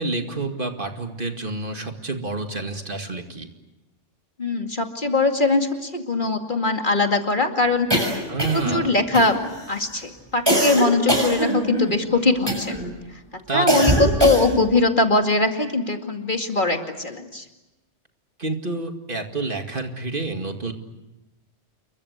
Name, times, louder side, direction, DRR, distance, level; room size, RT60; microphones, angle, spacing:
voice 1, 0.0-3.5 8.3-8.9 13.5-13.9 18.4-20.7, right 3 dB, 45° right, 5 dB, 2.4 m, -28 dB
voice 2, 4.4-7.9 8.5-9.4 9.7-12.7 13.5-17.4, left 3 dB, 45° left, 4 dB, 2.4 m, -21 dB
sound 1, 7.9-8.8 9.1-9.7 10.5-11.9 12.5-12.9 13.7-14.7, right 1 dB, 20° right, 6.7 m, -22 dB
29.0 x 23.0 x 8.2 m, 0.99 s
omnidirectional pair, 1.2 m